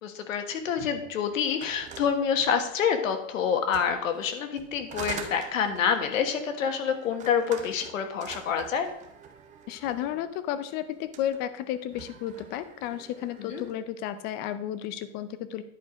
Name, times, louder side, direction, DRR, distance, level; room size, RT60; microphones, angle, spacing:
voice 1, 0.0-8.9 13.4-13.6, left 7 dB, 90° left, 7 dB, 1.6 m, -27 dB
sound 1, 1.4-3.0 3.6-10.3 11.0-11.4 11.8-13.8, right 7 dB, 20° right, 0.8 m, -45 dB
voice 2, 9.7-15.6, left 11 dB, 25° left, 13 dB, 0.5 m, -33 dB
10.5 x 4.7 x 5.1 m, 0.77 s
supercardioid pair, 155°, 38 cm